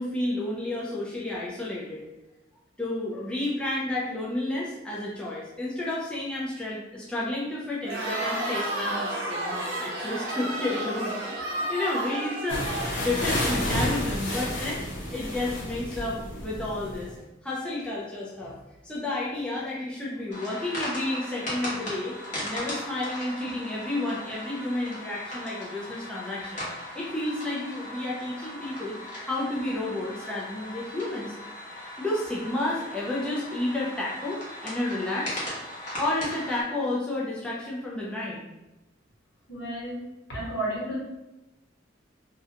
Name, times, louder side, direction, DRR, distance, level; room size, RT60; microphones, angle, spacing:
voice 1, 0.0-2.0 2.8-11.1 11.4-14.8 15.1-17.2 17.4-18.6 18.8-22.1 22.4-26.7 26.9-29.0 29.3-31.3 32.0-35.4 36.0-38.5, left 2 dB, 5° left, -6 dB, 0.3 m, -31 dB
Crowd, 7.8-14.0, right 1 dB, 90° right, 0.7 m, -32 dB
sound 1, 12.5-17.1, left 1 dB, 90° left, 0.7 m, -31 dB
sound 2, 20.3-36.6, left 1 dB, 45° left, 0.8 m, -38 dB
voice 2, 39.5-40.0 40.3-41.0, right 1 dB, 70° left, -5 dB, 1.1 m, -31 dB
2.4 x 2.1 x 2.7 m, 0.99 s
head